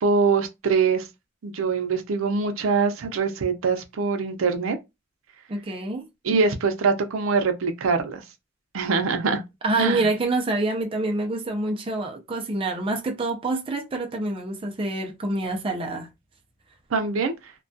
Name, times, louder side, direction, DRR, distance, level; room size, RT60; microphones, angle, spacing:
voice 1, 0.0-1.1 1.4-4.8 6.2-8.2 8.7-9.4 9.8-10.1 16.9-17.5, right 4 dB, 85° right, 0.5 m, -23 dB
voice 2, 5.5-6.1 9.6-16.1, right 2 dB, 25° right, 0.4 m, -27 dB
2.2 x 2.2 x 2.6 m
head